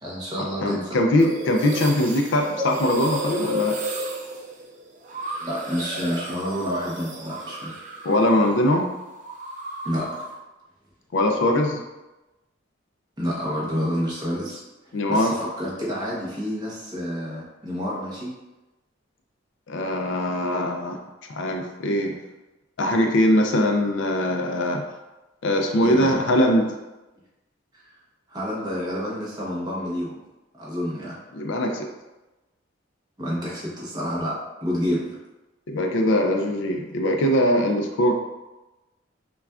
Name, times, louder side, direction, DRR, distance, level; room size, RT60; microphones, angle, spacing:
voice 1, 0.0-1.0 5.4-8.1 9.8-10.3 13.2-14.6 15.1-18.3 25.8-26.2 27.7-27.9 28.3-30.2 30.6-31.2 33.2-35.2, equal, 20° right, -5 dB, 0.9 m, -29 dB
voice 2, 0.6-3.8 8.0-8.9 11.1-11.8 14.9-15.3 19.7-21.0 21.3-22.1 22.8-24.8 25.4-26.7 31.3-31.9 35.7-38.1, left 1 dB, 65° left, 3 dB, 0.4 m, -21 dB
sound 1, 1.2-8.6 8.8-10.4, equal, 35° right, 0.4 m, -33 dB
5.6 x 2.3 x 2.4 m, 1.1 s
head